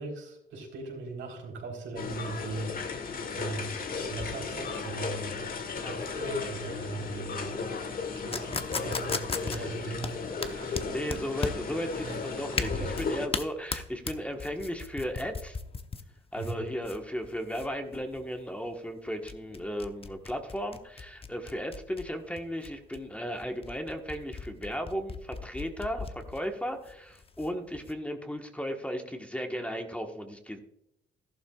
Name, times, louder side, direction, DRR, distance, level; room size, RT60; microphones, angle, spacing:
voice 1, 0.0-3.7 4.1-5.3 5.8-7.6 8.1-10.9 12.0-12.3 12.7-13.0 16.4-16.6, right 3 dB, 75° right, 1 dB, 4.0 m, -39 dB
sound 1, 2.0-13.3, left 4 dB, 45° left, 1.4 m, -35 dB
sound 2, 8.3-27.9, left 4 dB, 30° left, 0.9 m, -38 dB
voice 2, 10.9-15.6 16.3-30.6, equal, 5° left, 4 dB, 1.3 m, -35 dB
13.5 x 12.0 x 2.4 m, 0.78 s
cardioid pair, 90°, 20 cm